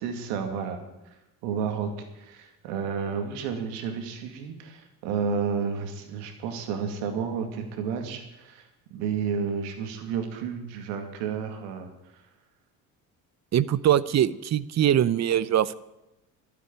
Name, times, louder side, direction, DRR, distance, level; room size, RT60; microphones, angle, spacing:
voice 1, 0.0-0.8 1.4-11.9, right 6 dB, 80° right, 6 dB, 2.3 m, -31 dB
voice 2, 13.5-15.8, right 10 dB, 40° right, 19 dB, 0.7 m, -22 dB
12.5 x 8.3 x 9.9 m, 0.92 s
hypercardioid pair, 65°, 42 cm